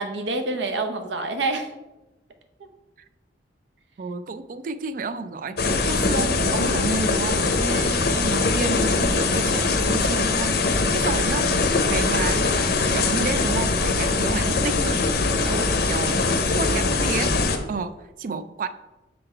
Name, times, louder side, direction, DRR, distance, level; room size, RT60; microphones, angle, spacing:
voice 1, 0.0-1.7 2.6-2.7 7.7-8.0 15.4-15.8, right 2 dB, 75° right, 7 dB, 0.7 m, -28 dB
voice 2, 4.0-12.6 12.9-15.0 15.4-17.4 17.7-18.7, right 4 dB, 45° right, 12 dB, 0.3 m, -31 dB
sound 1, 5.6-17.6, left 3 dB, 60° left, 0.7 m, -22 dB
6.5 x 3.9 x 4.4 m, 1.0 s
head